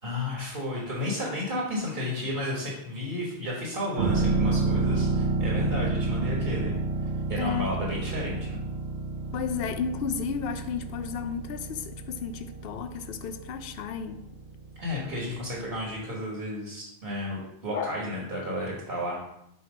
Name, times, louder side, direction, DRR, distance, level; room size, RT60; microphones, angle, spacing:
voice 1, 0.0-6.7 7.3-8.6 14.8-19.2, left 1 dB, 60° right, 1.5 m, -32 dB
sound 1, 4.0-15.5 15.8-15.9, right 3 dB, 90° right, 1.1 m, -30 dB
voice 2, 7.4-7.7 9.3-14.2 17.7-17.9, left 7 dB, 70° left, 0.7 m, -33 dB
7.0 x 3.0 x 4.9 m
omnidirectional pair, 1.1 m